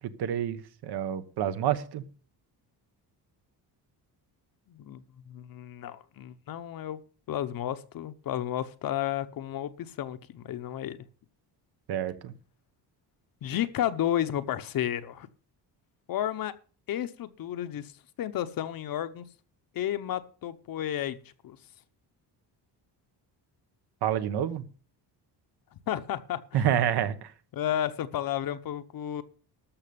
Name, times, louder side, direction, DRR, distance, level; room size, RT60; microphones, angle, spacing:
voice 1, 0.2-2.0 11.9-12.3 24.0-24.7 26.5-27.3, right 10 dB, 70° right, 1.2 m, -28 dB
voice 2, 4.7-5.0 5.3-7.0 7.3-11.0 13.4-15.3 16.1-16.5 16.9-17.9 18.2-19.3 19.7-21.2 21.4-21.6 25.9-26.6 27.5-29.2, left 11 dB, 55° left, 1.0 m, -32 dB
13.0 x 6.5 x 6.9 m
cardioid pair, 165°, 42 cm